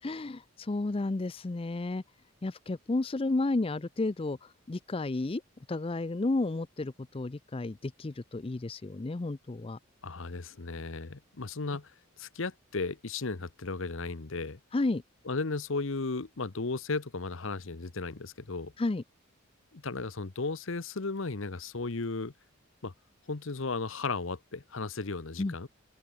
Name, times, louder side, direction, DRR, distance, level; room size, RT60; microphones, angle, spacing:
voice 1, 0.0-2.0 2.4-5.4 5.7-9.8 14.7-15.0 18.8-19.0 25.4-25.5, left 2 dB, 25° left, 0.5 m, -32 dB
voice 2, 10.0-11.9 12.2-14.6 15.3-18.7 19.7-22.3 22.8-22.9 23.3-25.7, left 3 dB, 65° left, 1.0 m, -35 dB
open air
head